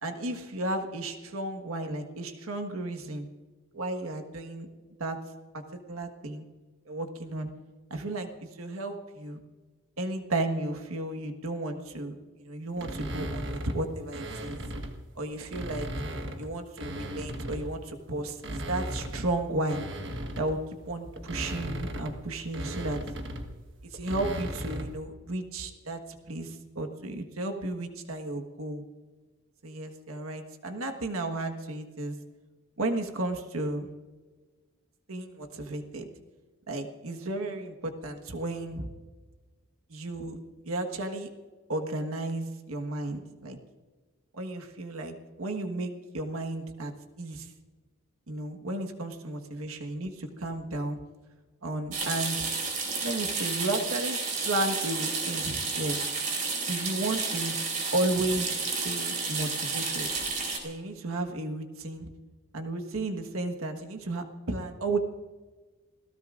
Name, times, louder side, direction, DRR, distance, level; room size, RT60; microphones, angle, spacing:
voice 1, 0.0-3.3 3.7-4.7 5.0-5.2 5.5-5.6 5.9-6.4 6.8-7.5 7.9-9.4 10.0-14.6 15.1-15.9 16.4-19.8 20.4-20.6 20.9-23.0 23.8-28.8 29.6-32.2 32.8-33.9 35.1-36.1 36.7-38.9 39.9-40.4 40.6-41.3 41.7-43.6 44.3-46.9 47.2-47.5 48.3-51.0 51.6-52.5 53.0-56.1 56.7-57.5 57.9-58.6 58.8-60.1 60.6-62.1 62.5-65.0, right 2 dB, 85° right, 5 dB, 1.5 m, -33 dB
sound 1, 12.8-15.0 15.4-17.8 18.3-25.0, right 1 dB, 60° right, 1.4 m, -37 dB
sound 2, 51.9-60.6, right 4 dB, 35° right, 4.0 m, -31 dB
28.0 x 17.5 x 2.6 m, 1.3 s
head